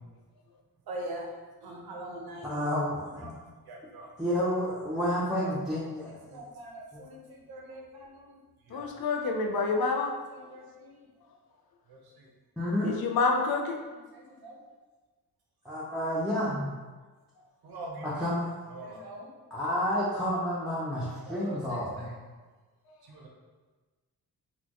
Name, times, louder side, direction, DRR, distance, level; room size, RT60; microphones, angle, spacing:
voice 1, 0.9-1.3 1.6-2.5 3.2-3.3 3.7-4.1 5.4-5.5 6.3-8.4 8.7-8.8 9.7-10.1 10.3-11.1 11.9-12.3 13.9-14.6 17.6-18.3 18.7-19.3 21.3-22.1 23.1-23.3, right 1 dB, 90° right, -1 dB, 0.8 m, -43 dB
voice 2, 2.4-3.3 4.2-6.4 6.9-7.0 12.6-12.9 15.6-16.7 18.0-18.5 19.5-22.1, equal, ahead, -9 dB, 0.5 m, -30 dB
voice 3, 8.7-10.1 12.8-13.8, left 4 dB, 75° left, 2 dB, 0.6 m, -27 dB
4.1 x 2.3 x 2.9 m, 1.3 s
wide cardioid pair, 150°, 36 cm